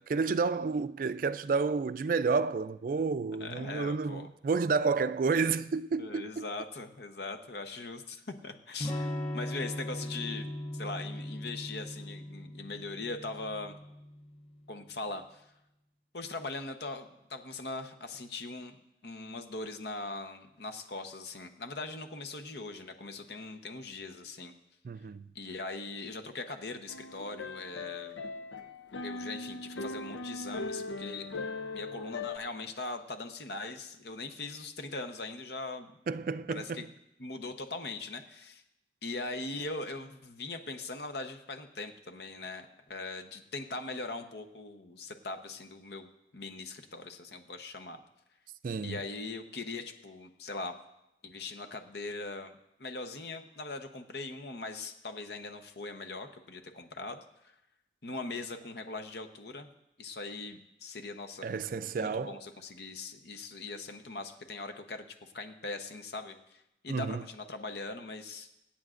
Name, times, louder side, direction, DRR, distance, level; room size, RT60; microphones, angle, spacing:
voice 1, 0.1-6.5 24.8-25.3 36.1-36.9 48.6-49.0 61.4-62.4 66.9-67.2, right 4 dB, 50° right, 0.3 m, -30 dB
voice 2, 3.4-4.3 5.9-13.8 14.7-15.4 16.1-24.5 25.3-28.2 29.0-31.3 31.7-36.0 36.5-36.8 37.2-38.6 39.0-48.0 48.8-50.7 51.2-57.2 58.0-59.7 60.0-61.5 61.9-68.5, left 3 dB, 65° left, 0.9 m, -41 dB
Electric guitar / Strum, 8.8-14.5, left 1 dB, 35° left, 0.8 m, -39 dB
sound 1, 26.9-32.4, left 3 dB, 80° left, 0.6 m, -39 dB
24.5 x 8.6 x 2.5 m
head